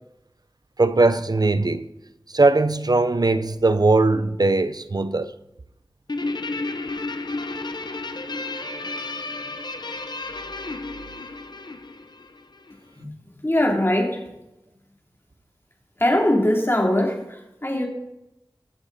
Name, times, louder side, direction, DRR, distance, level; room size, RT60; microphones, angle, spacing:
voice 1, 0.8-1.9 2.3-5.3, right 3 dB, 50° right, 0.8 m, -20 dB
Guitar, 6.1-12.8, left 2 dB, 60° left, 1.0 m, -32 dB
voice 2, 13.4-14.2 16.0-17.9, left 1 dB, 30° left, 3.5 m, -21 dB
23.5 x 7.9 x 4.3 m
wide cardioid pair, 55°, 8 cm